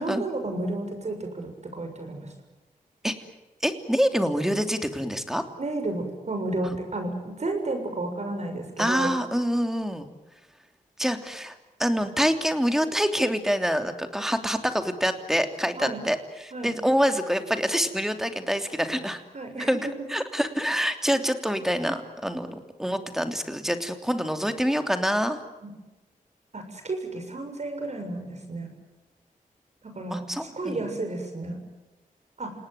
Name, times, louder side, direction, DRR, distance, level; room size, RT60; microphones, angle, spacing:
voice 1, 0.0-2.3 5.6-9.1 15.8-16.0 16.5-16.8 19.3-19.9 26.5-28.7 29.8-31.6 32.4-32.5, right 2 dB, 50° right, 5 dB, 7.0 m, -32 dB
voice 2, 3.6-5.4 6.6-6.8 8.8-10.1 11.0-19.2 19.6-19.8 20.1-25.4 30.1-30.8, equal, 5° right, 7 dB, 3.1 m, -26 dB
28.5 x 19.0 x 9.4 m, 1.1 s
cardioid pair, 65°, 15 cm